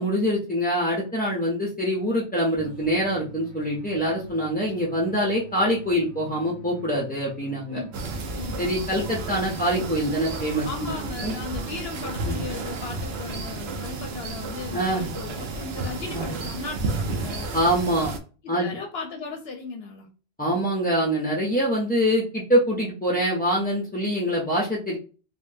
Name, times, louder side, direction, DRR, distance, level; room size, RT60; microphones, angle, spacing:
voice 1, 0.0-7.8 8.6-10.7 11.2-11.3 12.2-12.4 14.7-15.1 16.1-16.3 17.5-18.1 18.5-18.7 20.4-25.0, equal, 15° left, -3 dB, 0.3 m, -24 dB
sound 1, 2.5-8.7, right 6 dB, 45° right, 1.0 m, -46 dB
sound 2, 7.9-18.2, right 3 dB, 65° right, 0.8 m, -32 dB
voice 2, 10.6-17.5 18.4-20.1 20.5-20.6, left 4 dB, 65° left, 3 dB, 0.7 m, -36 dB
3.6 x 2.2 x 2.6 m, 0.36 s
omnidirectional pair, 1.2 m